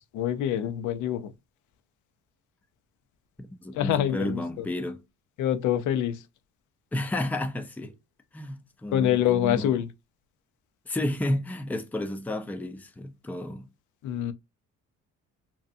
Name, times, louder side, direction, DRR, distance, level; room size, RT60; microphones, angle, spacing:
voice 1, 0.1-1.3 3.7-4.7 5.4-6.2 8.9-9.9 14.0-14.3, left 11 dB, 80° left, 0.5 m, -26 dB
voice 2, 3.4-5.0 6.9-7.9 8.3-9.7 10.9-13.7, left 1 dB, 5° left, 0.4 m, -32 dB
2.7 x 2.2 x 2.5 m
cardioid pair, 90°, 30 cm